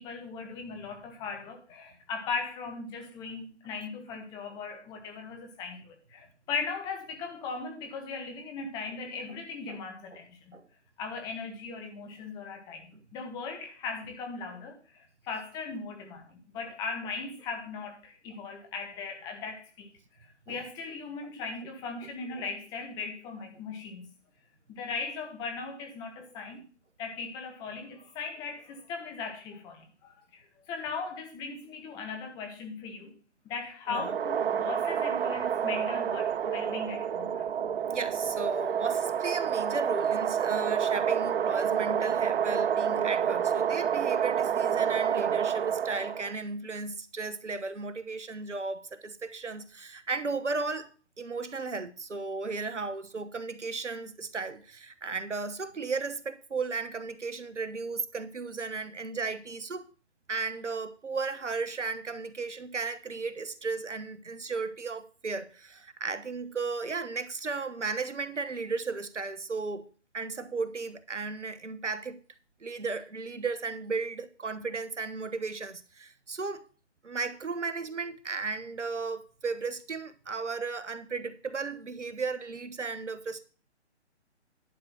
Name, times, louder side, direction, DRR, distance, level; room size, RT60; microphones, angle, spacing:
voice 1, 0.0-10.6 11.0-12.9 13.1-19.9 20.5-24.1 24.7-26.6 27.0-33.1 33.4-37.4, left 4 dB, 10° left, 1.2 m, -38 dB
sound 1, 33.9-46.3, right 8 dB, 55° right, 0.5 m, -28 dB
voice 2, 37.9-50.9 51.2-59.8 60.3-69.9 70.1-72.2 72.6-76.7 77.0-83.4, right 4 dB, 85° right, 1.2 m, -35 dB
11.0 x 6.1 x 5.9 m
figure-of-eight pair, 145°, 35 cm